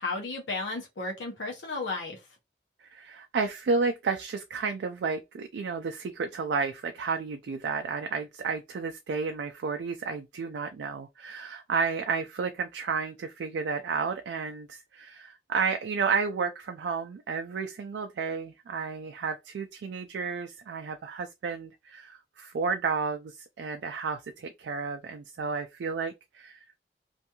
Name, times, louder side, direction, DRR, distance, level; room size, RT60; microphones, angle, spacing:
voice 1, 0.0-2.2, left 3 dB, 90° left, 0.8 m, -33 dB
voice 2, 2.9-26.6, right 5 dB, 80° right, 0.3 m, -32 dB
2.5 x 2.2 x 2.8 m
head